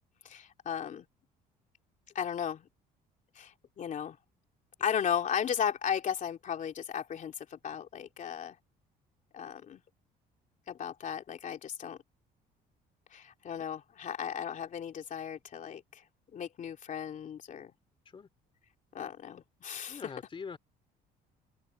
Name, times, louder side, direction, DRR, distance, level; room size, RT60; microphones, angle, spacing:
voice 1, 0.2-1.0 2.1-2.7 3.3-4.2 4.8-8.6 9.3-9.8 10.7-12.0 13.1-16.0 16.3-17.7 18.9-20.0, left 8 dB, 50° left, 2.9 m, -35 dB
voice 2, 19.9-20.6, left 5 dB, 30° left, 2.9 m, -43 dB
open air
cardioid pair, 110°, 17 cm